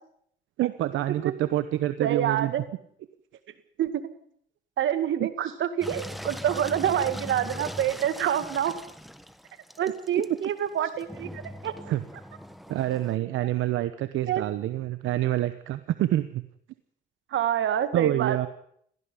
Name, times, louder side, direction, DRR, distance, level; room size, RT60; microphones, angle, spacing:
voice 1, 0.6-2.5 5.2-5.5 11.9-12.0 12.7-16.4 17.9-18.5, right 14 dB, 85° right, 12 dB, 1.0 m, -27 dB
voice 2, 2.0-2.6 3.8-4.1 4.8-8.8 9.8-11.7 14.3-14.4 17.3-18.5, right 10 dB, 70° right, 11 dB, 2.2 m, -27 dB
Engine, 5.8-13.2, equal, ahead, 1.5 m, -40 dB
18.0 x 15.0 x 9.8 m, 0.68 s
cardioid pair, 90°, 20 cm